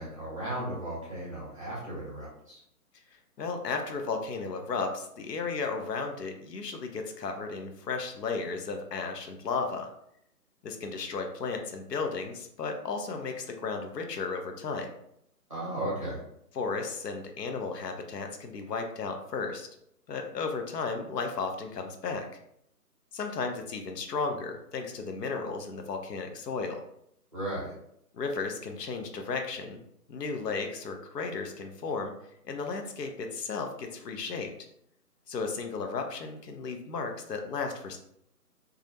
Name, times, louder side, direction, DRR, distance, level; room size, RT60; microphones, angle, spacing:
voice 1, 0.0-2.6 15.5-16.2 27.3-27.7, right 1 dB, 20° right, -9 dB, 0.6 m, -35 dB
voice 2, 3.4-9.9 10.6-14.9 16.5-19.7 20.1-22.3 23.1-26.8 28.1-29.8 30.1-32.1 32.4-34.5 35.3-38.0, left 4 dB, 85° left, 4 dB, 0.6 m, -34 dB
2.4 x 2.0 x 2.6 m, 0.74 s
hypercardioid pair, 160°, 47 cm